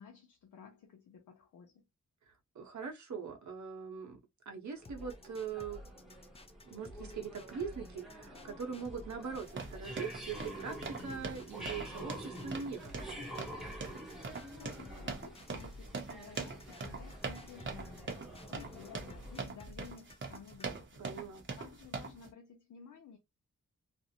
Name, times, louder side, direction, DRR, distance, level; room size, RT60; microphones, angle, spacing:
voice 1, 0.0-1.8 14.2-23.2, left 7 dB, 75° left, 0.6 m, -54 dB
voice 2, 2.3-4.2 4.5-5.8 6.6-13.3 21.0-21.5, right 6 dB, 70° right, 0.9 m, -42 dB
sound 1, 4.7-19.5, equal, ahead, 0.8 m, -48 dB
sound 2, 4.8-20.8, left 1 dB, 20° left, 0.3 m, -53 dB
sound 3, 9.3-22.3, right 4 dB, 40° right, 0.7 m, -43 dB
2.5 x 2.0 x 2.7 m
wide cardioid pair, 135°, 30 cm